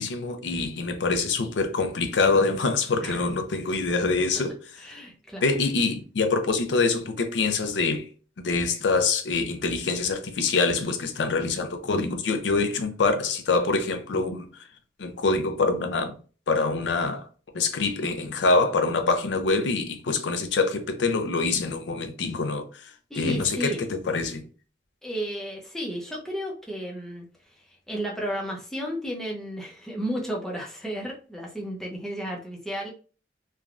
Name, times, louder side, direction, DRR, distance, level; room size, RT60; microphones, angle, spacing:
voice 1, 0.0-4.6 5.4-8.1 8.4-14.6 15.0-16.2 16.5-17.3 17.5-24.4, left 3 dB, 85° left, 0.5 m, -25 dB
voice 2, 4.8-5.5 23.1-23.8 25.0-32.9, equal, 5° left, 0.5 m, -33 dB
3.2 x 2.2 x 2.4 m
head